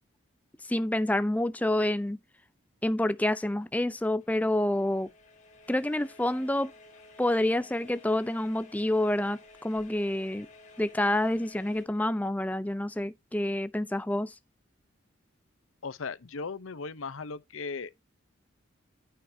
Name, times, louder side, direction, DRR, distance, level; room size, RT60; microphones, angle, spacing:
voice 1, 0.7-2.2 2.8-5.1 5.7-6.7 7.2-10.5 10.8-14.3, left 1 dB, 10° left, 0.4 m, -28 dB
sound 1, 4.2-11.9, left 2 dB, 35° left, 4.3 m, -54 dB
voice 2, 15.8-17.9, left 4 dB, 80° left, 0.7 m, -37 dB
9.1 x 8.7 x 2.7 m
head